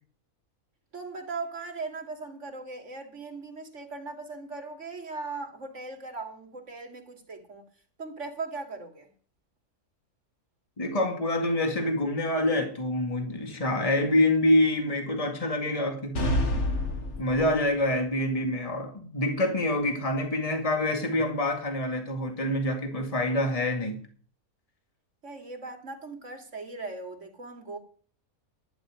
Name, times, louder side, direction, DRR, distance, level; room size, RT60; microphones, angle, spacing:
voice 1, 0.9-7.6 8.0-9.1 25.2-27.8, right 3 dB, 55° right, 2.6 m, -39 dB
voice 2, 10.8-16.2 17.2-24.0, left 1 dB, 25° left, 2.1 m, -26 dB
sound 1, 16.2-17.8, left 1 dB, 50° left, 1.9 m, -28 dB
11.5 x 11.5 x 5.0 m
omnidirectional pair, 1.5 m